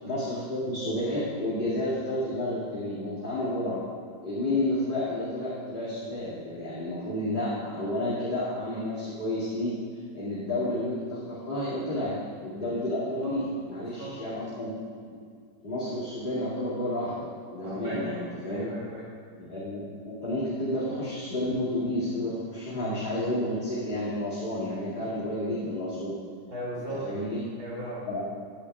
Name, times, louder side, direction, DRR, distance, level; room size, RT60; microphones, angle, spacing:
voice 1, 0.0-3.8 4.2-9.7 10.1-12.1 12.4-14.7 15.1-15.2 15.6-18.7 19.4-26.1 26.9-27.4 28.0-28.2, left 1 dB, 25° left, -12 dB, 2.4 m, -31 dB
voice 2, 13.8-14.1 17.6-18.1 18.5-19.0 26.5-27.0 27.6-28.0, right 1 dB, 50° right, -7 dB, 3.7 m, -37 dB
15.0 x 10.5 x 2.4 m, 2.1 s
omnidirectional pair, 2.0 m